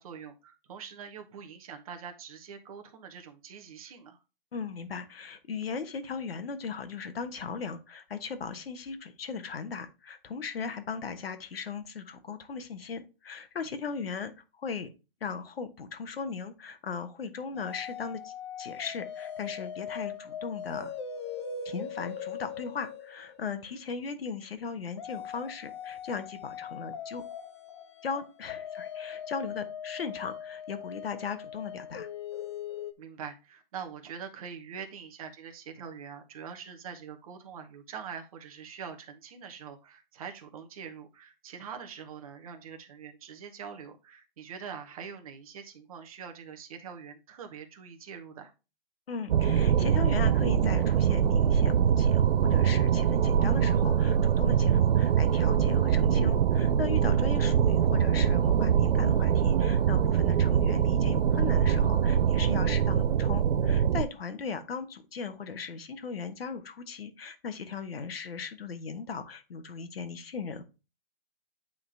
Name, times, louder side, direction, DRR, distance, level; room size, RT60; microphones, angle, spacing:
voice 1, 0.0-4.2 33.0-48.5 60.3-60.4, right 7 dB, 40° right, 5 dB, 1.2 m, -44 dB
voice 2, 4.5-14.3 14.6-14.9 15.2-20.9 21.6-27.2 28.0-32.1 49.1-70.6, left 5 dB, 85° left, 9 dB, 1.2 m, -38 dB
sound 1, 17.6-23.8 25.0-32.9, left 7 dB, 30° left, 0.5 m, -40 dB
sound 2, 49.3-64.0, right 8 dB, 75° right, 0.5 m, -23 dB
8.8 x 3.8 x 3.4 m, 0.29 s
hypercardioid pair, 160°, 29 cm